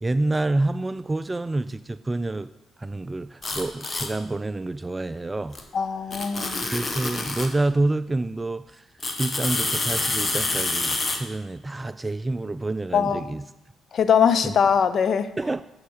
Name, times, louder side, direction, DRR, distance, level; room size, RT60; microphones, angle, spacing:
voice 1, 0.0-2.5 2.8-5.6 6.6-8.8 9.2-13.4 15.4-15.6, right 2 dB, 25° right, 14 dB, 0.3 m, -27 dB
sound 1, 3.4-4.1 5.5-5.6 6.1-7.5 9.0-11.2, left 2 dB, 30° left, 1.6 m, -27 dB
voice 2, 5.7-6.7 12.9-13.4 13.9-15.3, left 7 dB, 55° left, 12 dB, 0.7 m, -21 dB
11.0 x 6.6 x 4.9 m, 0.94 s
hypercardioid pair, 45°, 0 cm